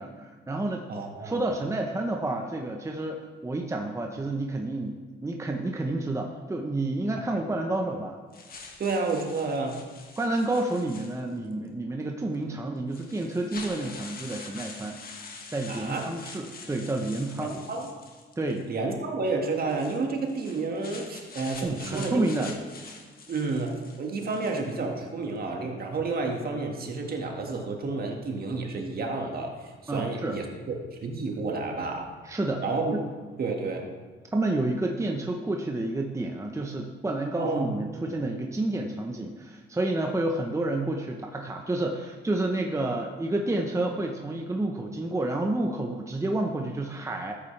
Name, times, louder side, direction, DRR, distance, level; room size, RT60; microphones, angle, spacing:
voice 1, 0.0-0.9 1.2-8.2 10.2-15.0 15.5-17.6 18.4-18.7 21.6-22.5 29.9-30.4 32.2-32.6 32.9-33.0 34.3-47.4, right 2 dB, 15° right, 2 dB, 1.0 m, -29 dB
voice 2, 0.9-1.4 7.3-7.4 8.8-9.8 15.7-16.1 17.4-17.9 18.7-22.2 23.3-32.1 32.6-33.0 33.4-33.9 37.4-37.7, right 3 dB, 50° right, 2 dB, 1.9 m, -30 dB
sound 1, 8.3-11.5 12.3-12.4 12.9-18.7 19.6-24.8, left 4 dB, 50° left, 1.6 m, -45 dB
13.5 x 8.4 x 3.4 m, 1.5 s
cardioid pair, 90°, 20 cm